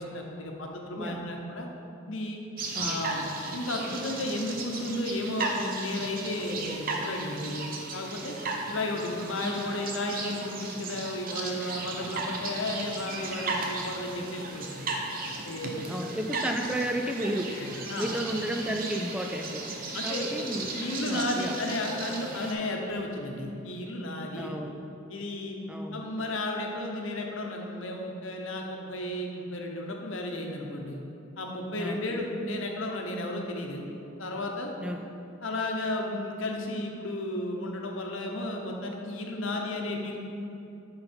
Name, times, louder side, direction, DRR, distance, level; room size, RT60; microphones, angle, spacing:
voice 1, 0.0-1.7 2.1-2.4 2.8-8.4 8.7-14.9 15.4-15.9 17.5-18.1 19.9-20.3 20.7-24.5 25.1-25.6 25.9-31.0 31.4-33.8 34.2-34.7 35.4-40.2, left 1 dB, 75° left, 1 dB, 0.9 m, -33 dB
voice 2, 1.0-1.3 2.8-3.0 15.8-17.7 18.0-19.7 20.0-21.6 24.3-24.8 25.7-26.1 31.8-32.2 34.8-35.0, right 1 dB, 5° right, 3 dB, 0.4 m, -33 dB
sound 1, 2.6-22.5, right 3 dB, 45° right, 0.8 m, -36 dB
10.5 x 4.0 x 4.4 m, 2.8 s
head